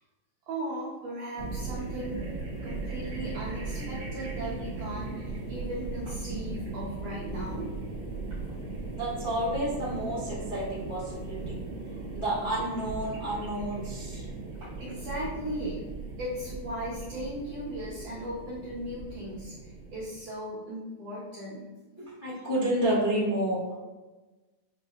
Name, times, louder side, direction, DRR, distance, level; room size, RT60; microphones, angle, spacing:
voice 1, 0.5-2.2 2.6-7.7 8.3-8.6 14.5-15.8 16.2-21.7, equal, 70° right, -8 dB, 1.6 m, -37 dB
sound 1, 1.4-20.2, right 3 dB, 85° right, 1.0 m, -38 dB
voice 2, 9.0-11.6 12.1-14.2 22.0-23.8, right 1 dB, 40° left, -9 dB, 0.6 m, -30 dB
7.2 x 2.6 x 2.3 m, 1.2 s
omnidirectional pair, 3.7 m